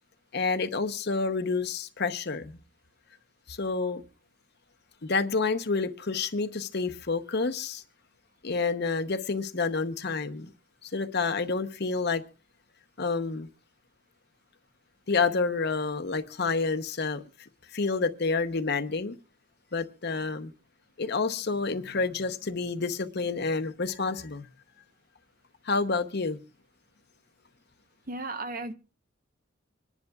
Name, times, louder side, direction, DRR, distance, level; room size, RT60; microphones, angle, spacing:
voice 1, 0.3-2.6 3.5-4.0 5.0-7.8 8.4-10.5 10.8-12.2 13.0-13.5 15.1-17.2 17.7-19.2 19.7-20.5 21.0-24.5 25.6-26.4, left 4 dB, 55° left, 0.9 m, -29 dB
voice 2, 28.1-28.7, right 2 dB, 45° right, 0.9 m, -34 dB
26.0 x 10.5 x 2.4 m
head